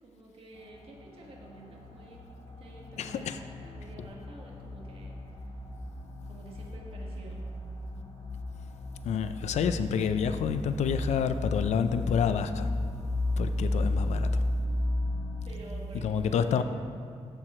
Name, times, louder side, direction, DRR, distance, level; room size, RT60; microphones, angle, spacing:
voice 1, 0.0-2.2 2.6-5.5 6.3-7.4 13.8-14.2 15.4-16.6, right 2 dB, 55° right, -1 dB, 1.5 m, -49 dB
sound 1, 0.6-15.5, left 2 dB, 55° left, 1.0 m, -34 dB
voice 2, 3.0-3.4 9.0-12.7 13.4-14.3 16.0-16.6, left 7 dB, 85° left, 10 dB, 0.4 m, -28 dB
13.5 x 4.8 x 4.3 m, 2.4 s
wide cardioid pair, 170°, 11 cm